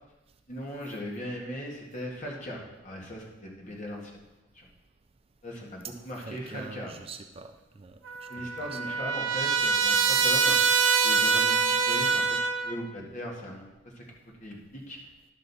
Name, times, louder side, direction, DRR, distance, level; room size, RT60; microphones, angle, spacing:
voice 1, 0.5-4.2 4.5-4.7 5.4-7.0 8.3-10.6 11.0-13.7 13.9-14.0 14.4-15.0, equal, 40° left, -2 dB, 1.9 m, -39 dB
voice 2, 6.2-8.8, right 4 dB, 30° right, 7 dB, 0.4 m, -45 dB
Trumpet, 8.0-12.8, right 5 dB, 80° right, 0.7 m, -24 dB
11.0 x 6.5 x 4.2 m, 1.0 s
head